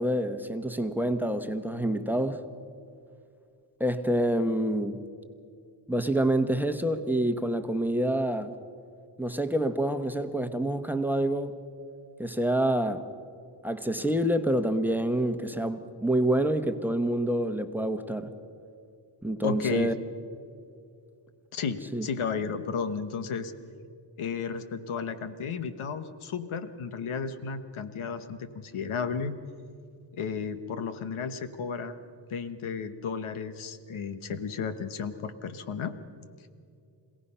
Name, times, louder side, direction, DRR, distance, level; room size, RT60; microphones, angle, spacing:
voice 1, 0.0-2.4 3.8-5.0 5.9-8.5 9.2-11.6 12.2-13.0 13.6-18.3 19.2-19.9 21.9-22.1, right 1 dB, 5° right, 1.1 m, -27 dB
voice 2, 19.4-19.9 21.5-23.5 24.2-29.4 30.1-32.0 32.3-36.0, left 6 dB, 80° left, 1.2 m, -33 dB
26.5 x 17.0 x 5.6 m
cardioid pair, 75°, 48 cm